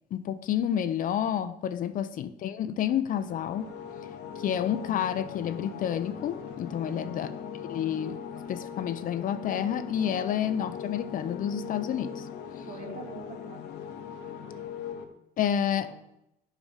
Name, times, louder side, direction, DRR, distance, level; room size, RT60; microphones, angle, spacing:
voice 1, 0.1-3.7 4.4-7.3 7.7-8.2 8.5-12.3 15.4-15.9, left 9 dB, 55° left, 12 dB, 0.5 m, -29 dB
sound 1, 3.1-15.0, left 7 dB, 80° left, 1.0 m, -40 dB
voice 2, 6.8-7.3 12.7-13.7 15.7-16.1, right 4 dB, 45° right, 0 dB, 2.3 m, -45 dB
8.1 x 5.0 x 5.6 m, 0.84 s
cardioid pair, 110°, 17 cm